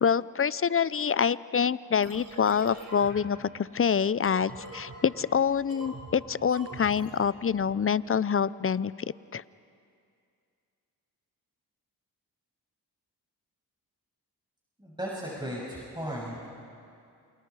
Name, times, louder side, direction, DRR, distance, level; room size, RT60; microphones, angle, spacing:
voice 1, 0.0-8.9 9.3-9.4, left 7 dB, 35° left, 19 dB, 0.6 m, -26 dB
sound 1, 2.0-7.7, right 2 dB, 55° right, 5.6 m, -45 dB
voice 2, 14.8-16.5, equal, 10° right, -4 dB, 6.8 m, -36 dB
28.5 x 27.0 x 4.9 m, 2.4 s
supercardioid pair, 40°, 40 cm